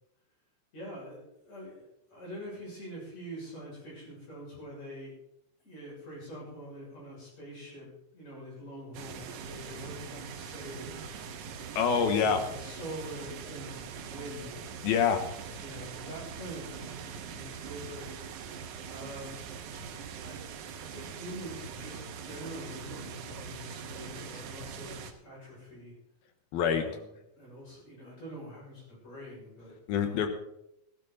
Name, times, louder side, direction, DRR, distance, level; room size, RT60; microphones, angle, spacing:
voice 1, 0.7-5.1 5.6-7.9 8.1-11.1 12.1-14.5 15.6-18.1 18.9-19.4 20.2-20.4 20.7-25.9 26.6-27.1 27.4-30.3, equal, 40° left, -5 dB, 7.7 m, -45 dB
sound 1, 8.9-25.1, right 6 dB, 70° right, 2.0 m, -42 dB
voice 2, 11.8-12.4 14.8-15.2 26.5-26.8 29.9-30.3, left 7 dB, 70° left, 7 dB, 2.9 m, -25 dB
16.5 x 12.5 x 4.1 m, 0.83 s
omnidirectional pair, 4.7 m